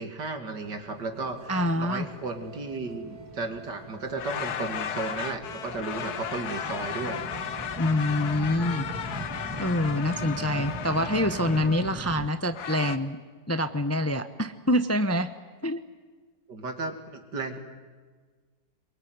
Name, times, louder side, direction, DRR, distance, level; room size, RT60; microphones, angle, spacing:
voice 1, 0.0-7.2 10.1-10.7 16.5-17.6, right 3 dB, 85° right, 6 dB, 3.0 m, -34 dB
sound 1, 0.6-12.3, right 1 dB, 10° right, 1.3 m, -41 dB
sound 2, 1.3-9.0, right 7 dB, 65° right, 3.8 m, -51 dB
voice 2, 1.5-2.1 7.8-8.9 9.6-13.2 13.5-15.3 15.6-15.8, left 1 dB, 15° left, 10 dB, 0.6 m, -26 dB
sound 3, 4.1-13.0, left 8 dB, 70° left, 1.5 m, -35 dB
24.0 x 23.0 x 9.6 m, 1.5 s
omnidirectional pair, 1.8 m